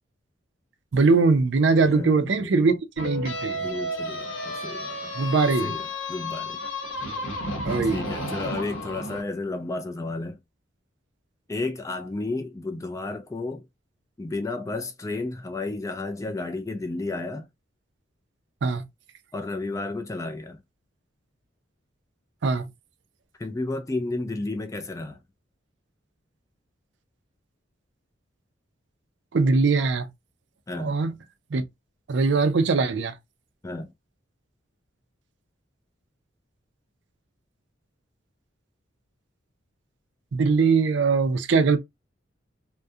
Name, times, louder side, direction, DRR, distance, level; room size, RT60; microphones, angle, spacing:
voice 1, 0.9-3.7 5.2-5.8 7.6-8.0 18.6-18.8 22.4-22.7 29.3-30.1 30.7-31.1 31.5-31.6 32.1-33.1 40.3-41.8, right 4 dB, 60° right, 0.4 m, -21 dB
voice 2, 1.9-2.6 3.6-5.2 5.6-6.6 7.9-10.4 11.5-13.6 14.2-17.5 19.3-20.6 23.4-25.2 30.7-31.0 33.6-33.9, left 2 dB, 15° left, 0.3 m, -32 dB
sound 1, 3.0-9.2, left 1 dB, 85° left, 0.9 m, -32 dB
2.3 x 2.1 x 2.6 m
head